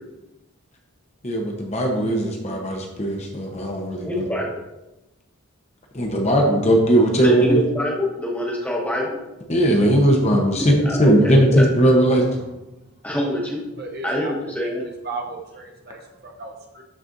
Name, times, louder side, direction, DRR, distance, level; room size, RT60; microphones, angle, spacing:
voice 1, 1.2-4.2 5.9-7.6 9.5-12.3, right 1 dB, 30° left, 1 dB, 0.8 m, -18 dB
voice 2, 4.0-4.5 7.2-9.2 10.6-11.7 13.0-13.6 14.0-14.9, left 1 dB, 5° left, -2 dB, 1.1 m, -25 dB
voice 3, 13.8-14.3 15.0-16.8, right 3 dB, 45° right, 1 dB, 0.8 m, -35 dB
12.5 x 4.2 x 2.6 m, 0.99 s
head